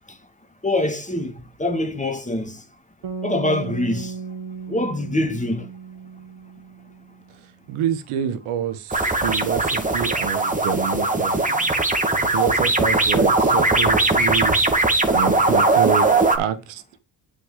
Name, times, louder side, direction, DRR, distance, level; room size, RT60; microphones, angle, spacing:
voice 1, 0.6-2.6 3.2-4.1 4.7-5.7, left 1 dB, 15° left, 2.3 m, -24 dB
sound 1, 3.0-7.3, right 5 dB, 60° right, 1.9 m, -35 dB
voice 2, 7.7-11.7 12.3-16.8, right 9 dB, 85° right, 1.4 m, -27 dB
sound 2, 8.9-16.4, right 2 dB, 15° right, 2.3 m, -19 dB
8.4 x 6.0 x 5.0 m
supercardioid pair, 65°, 49 cm